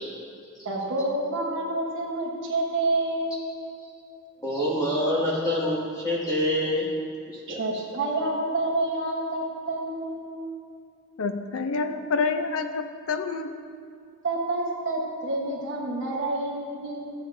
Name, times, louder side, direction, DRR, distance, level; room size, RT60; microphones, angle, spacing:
voice 1, 0.6-3.4 7.5-10.4 14.2-17.1, right 2 dB, 55° right, -3 dB, 1.1 m, -28 dB
voice 2, 4.4-6.9 7.5-7.6, equal, 15° left, -7 dB, 2.1 m, -25 dB
voice 3, 11.2-13.5, left 4 dB, 65° left, 8 dB, 0.5 m, -28 dB
13.5 x 7.9 x 2.6 m, 2.5 s
head